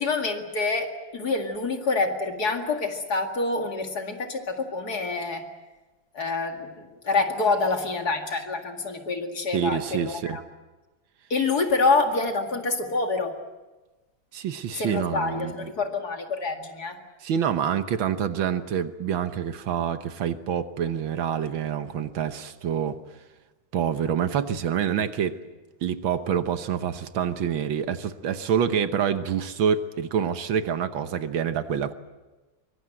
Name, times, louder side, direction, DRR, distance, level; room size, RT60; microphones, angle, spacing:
voice 1, 0.0-5.4 6.1-10.4 11.3-13.3 14.7-17.0, left 3 dB, 50° left, 4 dB, 2.6 m, -27 dB
voice 2, 9.5-10.4 14.3-15.5 17.2-23.0 23.7-25.4 25.8-31.9, right 8 dB, 75° right, 10 dB, 1.8 m, -27 dB
24.5 x 22.0 x 7.7 m, 1.2 s
omnidirectional pair, 2.2 m